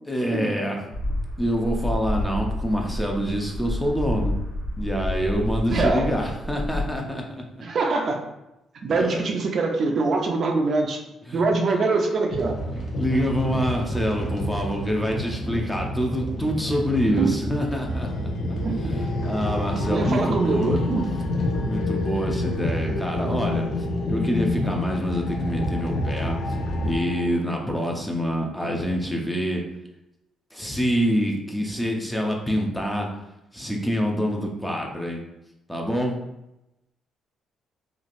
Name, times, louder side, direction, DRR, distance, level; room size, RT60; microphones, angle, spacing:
voice 1, 0.1-0.8 1.4-4.4 4.8-7.4 8.9-9.2 11.3-11.4 13.0-18.1 18.8-20.8 21.7-23.7 24.1-26.6 26.8-29.6 30.5-33.1 33.5-35.2 35.7-36.2, equal, 5° left, 0 dB, 0.5 m, -26 dB
sound 1, 0.9-7.0, left 1 dB, 90° left, 1.1 m, -29 dB
voice 2, 5.7-6.1 7.6-8.2 8.8-11.0 11.3-12.6 17.0-17.4 18.6-18.9 19.9-21.1, right 3 dB, 55° right, 3 dB, 0.4 m, -24 dB
sound 2, 12.3-27.0, equal, 50° left, 0.8 m, -29 dB
sound 3, 17.2-27.4, left 4 dB, 70° left, 0.3 m, -31 dB
3.1 x 2.4 x 2.5 m, 0.91 s
cardioid pair, 90°, 0 cm